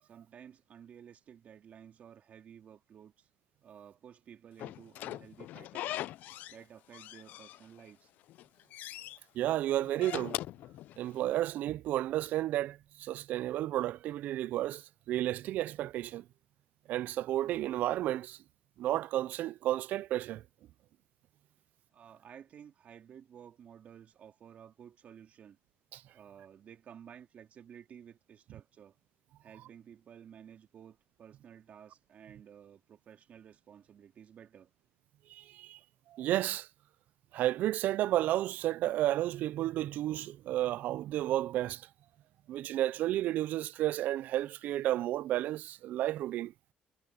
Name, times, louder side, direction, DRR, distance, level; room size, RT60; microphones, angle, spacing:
voice 1, 0.0-3.3 3.6-6.0 6.5-8.1 21.9-25.6 26.1-29.0 29.4-34.7, right 8 dB, 55° right, 2.7 m, -54 dB
Slam / Squeak, 4.6-6.6 6.9-7.9 8.3-9.2 9.8-11.4, left 14 dB, 80° left, 0.4 m, -41 dB
voice 2, 9.3-10.4 11.0-16.2 16.9-18.4 18.8-20.4 25.9-26.0 35.3-35.8 36.1-36.7 37.3-41.9 42.5-46.5, right 14 dB, 75° right, 0.4 m, -32 dB
cardioid pair, 90°, 3 cm